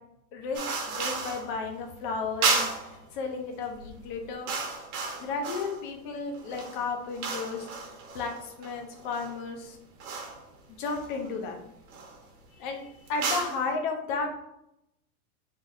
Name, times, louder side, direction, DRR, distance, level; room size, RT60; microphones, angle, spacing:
voice 1, 0.3-4.5 5.2-7.7 8.1-9.8 10.8-11.6 12.5-14.4, left 4 dB, 35° left, 3 dB, 0.7 m, -33 dB
sound 1, 0.5-1.5 2.4-3.0 3.7-3.9 4.2-5.9 6.3-9.3 10.0-10.4 10.9-11.4 11.9-12.2 13.1-13.6, right 4 dB, 65° right, 1.2 m, -33 dB
4.3 x 3.6 x 2.6 m, 0.82 s
supercardioid pair, 155°, 45 cm